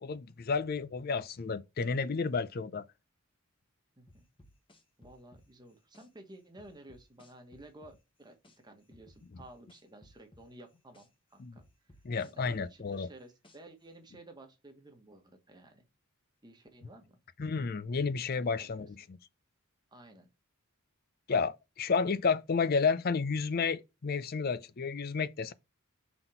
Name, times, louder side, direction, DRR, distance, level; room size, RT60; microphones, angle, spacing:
voice 1, 0.0-2.8 11.4-11.5 12.0-13.1 17.4-19.2 21.3-25.5, left 5 dB, 45° left, 0.5 m, -31 dB
voice 2, 4.0-4.3 5.0-12.0 12.2-15.8 16.4-17.2 18.3-18.8 19.9-20.3, right 1 dB, 20° right, 1.2 m, -54 dB
sound 1, 4.1-6.1 6.6-8.6 8.9-11.1 11.6-13.8, left 1 dB, 25° left, 1.2 m, -59 dB
5.8 x 4.0 x 4.4 m
head